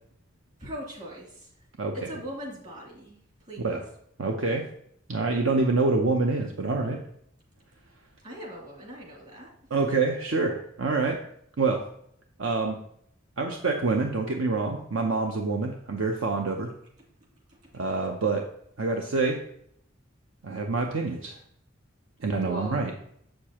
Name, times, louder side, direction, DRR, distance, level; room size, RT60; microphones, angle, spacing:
voice 1, 0.6-1.5 1.9-3.2 3.5-3.7 8.2-9.5 22.4-22.9, equal, 40° right, -3 dB, 2.6 m, -39 dB
voice 2, 1.8-2.1 3.6-3.8 4.2-4.7 5.1-7.0 9.7-11.2 11.6-11.9 12.4-12.8 13.4-16.7 17.7-18.5 18.8-19.4 20.4-21.4 22.2-22.9, right 3 dB, 70° right, 3 dB, 0.7 m, -26 dB
7.5 x 6.7 x 2.9 m, 0.70 s
head